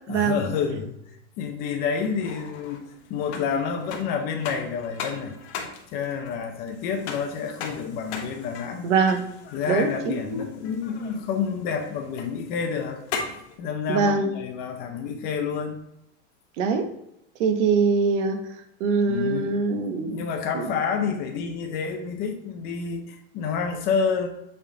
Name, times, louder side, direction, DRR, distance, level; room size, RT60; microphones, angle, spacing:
voice 1, 0.1-1.0 1.4-5.4 5.9-8.9 9.5-13.0 13.6-15.8 19.1-19.5 20.1-24.3, left 6 dB, 25° left, 0.5 m, -29 dB
sound 1, 2.0-13.6, left 5 dB, 65° left, 1.3 m, -39 dB
voice 2, 8.8-9.3 9.7-10.4 13.9-14.3 16.6-16.9 17.4-18.4 18.8-20.2 20.5-20.7, right 4 dB, 75° right, 1.0 m, -23 dB
7.4 x 3.5 x 3.8 m
supercardioid pair, 175°, 36 cm